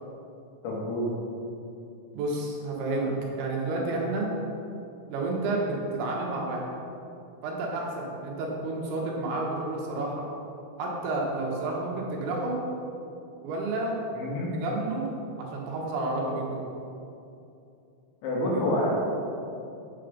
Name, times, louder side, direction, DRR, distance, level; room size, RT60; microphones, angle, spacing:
voice 1, 0.6-1.1 14.2-14.5 18.2-19.0, left 1 dB, 75° left, -4 dB, 4.1 m, -27 dB
voice 2, 2.1-4.3 5.1-6.6 7.4-10.2 10.8-12.6 13.4-14.0 14.6-15.1 15.4-16.6, right 2 dB, 80° right, -2 dB, 3.7 m, -30 dB
8.6 x 7.9 x 5.2 m, 2.7 s
omnidirectional pair, 5.3 m